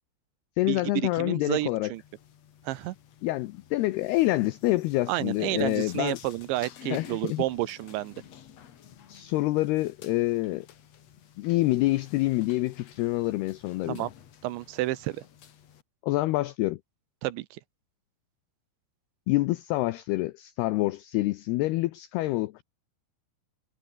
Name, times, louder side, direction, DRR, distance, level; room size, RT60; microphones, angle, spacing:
voice 1, 0.6-1.9 3.2-6.2 6.9-7.4 9.1-10.7 11.4-14.1 16.0-16.8 19.3-22.6, left 18 dB, 85° left, 2.3 m, -27 dB
voice 2, 1.2-2.0 2.6-3.0 5.1-8.2 13.9-14.1 14.4-15.2 17.2-17.6, right 17 dB, 80° right, 3.1 m, -30 dB
sound 1, 1.9-15.8, left 9 dB, 55° left, 1.8 m, -51 dB
omnidirectional pair, 5.5 m